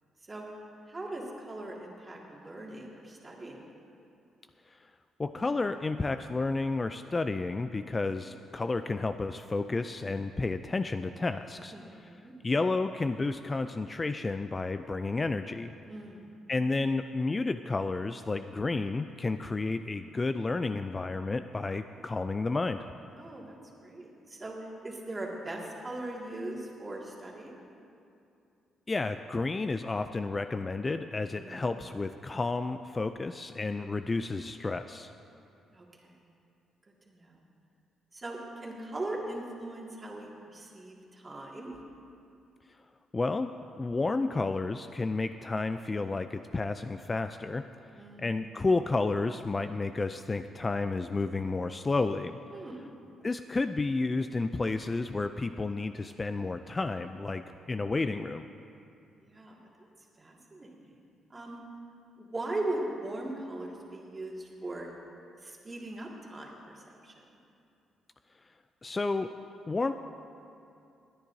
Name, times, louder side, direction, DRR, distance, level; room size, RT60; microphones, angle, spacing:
voice 1, 0.9-3.6 11.7-12.3 15.9-16.3 23.1-24.6 24.8-27.6 31.3-31.6 35.7-36.2 37.1-37.4 38.1-41.8 47.9-48.3 52.5-52.8 59.2-59.5 60.2-61.0 61.3-61.6 62.2-64.9 65.4-67.1, right 2 dB, 25° right, -2 dB, 2.1 m, -39 dB
voice 2, 5.2-11.7 12.4-15.7 16.5-22.8 28.9-35.1 43.1-47.7 48.2-52.4 53.2-58.5 68.8-69.3 69.7-69.9, left 3 dB, 25° left, 9 dB, 0.3 m, -31 dB
20.5 x 10.0 x 2.7 m, 2.6 s
cardioid pair, 90°, 0 cm